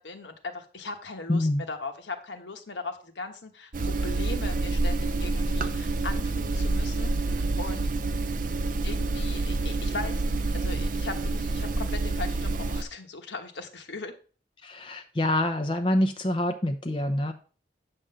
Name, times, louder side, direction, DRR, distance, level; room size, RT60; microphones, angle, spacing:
voice 1, 0.0-7.9 8.8-14.1, left 3 dB, 70° left, 5 dB, 1.2 m, -39 dB
voice 2, 1.3-1.6 14.6-17.3, left 1 dB, 25° left, 5 dB, 0.6 m, -26 dB
sound 1, 3.7-12.8, right 2 dB, 45° right, 0.5 m, -28 dB
8.7 x 3.7 x 6.7 m, 0.39 s
head